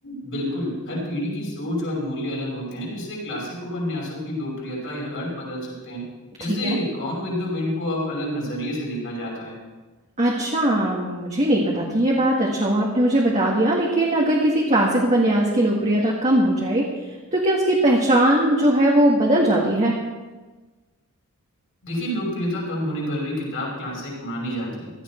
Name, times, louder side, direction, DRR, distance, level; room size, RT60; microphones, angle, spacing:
voice 1, 0.0-6.0 6.4-9.6 21.8-24.9, left 1 dB, 60° left, -3 dB, 5.8 m, -29 dB
voice 2, 10.2-16.9 17.3-20.0, right 1 dB, 30° right, -3 dB, 1.8 m, -20 dB
16.0 x 13.5 x 4.5 m, 1.3 s
head